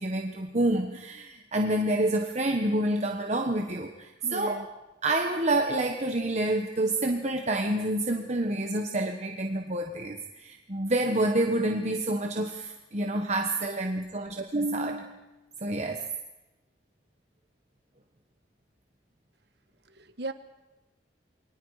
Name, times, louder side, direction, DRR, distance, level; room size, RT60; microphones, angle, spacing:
voice 1, 0.0-4.6 5.0-15.3 15.6-16.0, right 1 dB, 40° right, 3 dB, 1.4 m, -28 dB
voice 2, 4.2-4.7 19.9-20.3, right 2 dB, 65° right, 9 dB, 1.5 m, -37 dB
29.0 x 23.0 x 5.0 m, 1.0 s
head